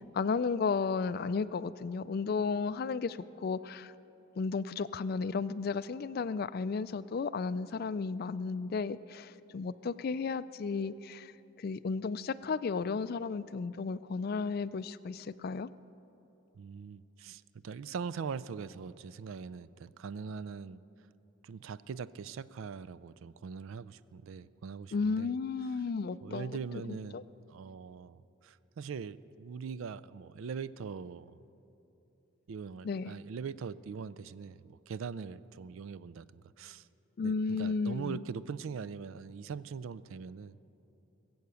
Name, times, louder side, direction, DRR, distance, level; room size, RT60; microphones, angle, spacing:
voice 1, 0.1-3.9 4.4-11.3 11.6-15.7 24.9-26.6 26.9-27.2 32.8-33.1 37.2-38.2, left 4 dB, 45° left, 16 dB, 0.3 m, -33 dB
voice 2, 16.5-20.8 21.4-25.3 26.2-31.3 32.5-36.9 37.2-40.6, right 6 dB, 70° right, 16 dB, 0.4 m, -42 dB
21.5 x 7.9 x 6.9 m, 3.0 s
head